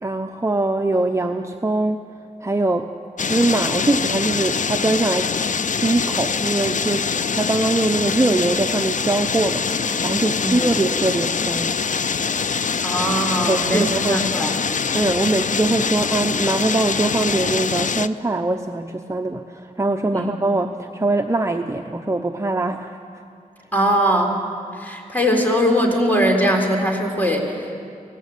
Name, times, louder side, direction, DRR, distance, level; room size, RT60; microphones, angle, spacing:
voice 1, 0.0-2.0 2.4-2.9 3.2-5.3 5.8-11.8 13.5-14.2 14.9-23.0, right 2 dB, 20° right, 4 dB, 0.8 m, -22 dB
sound 1, 3.2-18.1, left 5 dB, 60° left, 0.5 m, -24 dB
voice 2, 12.8-14.5 20.1-20.3 23.7-24.4 24.7-27.7, equal, 10° left, 1 dB, 3.7 m, -20 dB
24.5 x 17.5 x 8.3 m, 2.5 s
wide cardioid pair, 110°, 15 cm